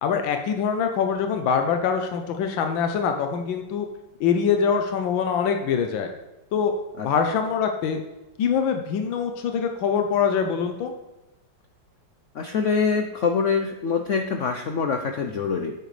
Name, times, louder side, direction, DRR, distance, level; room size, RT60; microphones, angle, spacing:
voice 1, 0.0-3.9 4.2-6.1 6.5-6.7 7.0-8.0 8.4-10.9, left 6 dB, 90° left, 5 dB, 1.5 m, -24 dB
voice 2, 12.3-15.7, left 5 dB, 70° left, 5 dB, 0.7 m, -24 dB
10.0 x 8.8 x 3.2 m, 1.1 s
omnidirectional pair, 2.0 m